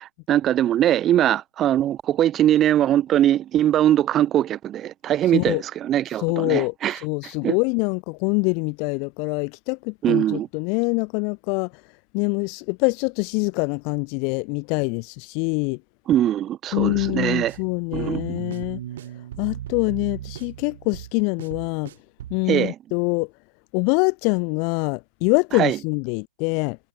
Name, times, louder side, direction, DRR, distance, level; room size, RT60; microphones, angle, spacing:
voice 1, 0.0-7.0 7.4-7.6 10.0-10.5 16.1-17.5 17.9-18.4 22.5-22.8 25.5-25.8, right 11 dB, 20° right, 5.3 m, -21 dB
voice 2, 6.2-11.7 12.1-15.8 16.7-18.8 19.4-21.9 22.3-23.3 23.7-26.8, left 38 dB, 30° left, 1.6 m, -24 dB
sound 1, 16.8-22.4, right 12 dB, 50° right, 5.0 m, -36 dB
figure-of-eight pair, 130°, 0 cm